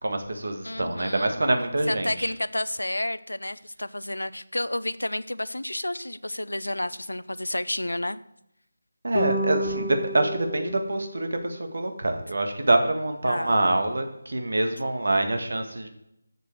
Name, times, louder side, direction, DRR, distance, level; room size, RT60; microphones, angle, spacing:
voice 1, 0.0-2.3 9.0-15.9, right 2 dB, 60° right, 6 dB, 1.7 m, -25 dB
voice 2, 0.6-1.4 1.9-8.2 13.3-13.6, left 1 dB, 80° left, 16 dB, 0.6 m, -31 dB
sound 1, 9.1-11.7, equal, 35° left, 1.7 m, -31 dB
7.6 x 6.9 x 6.2 m, 0.82 s
figure-of-eight pair, 160°, 0 cm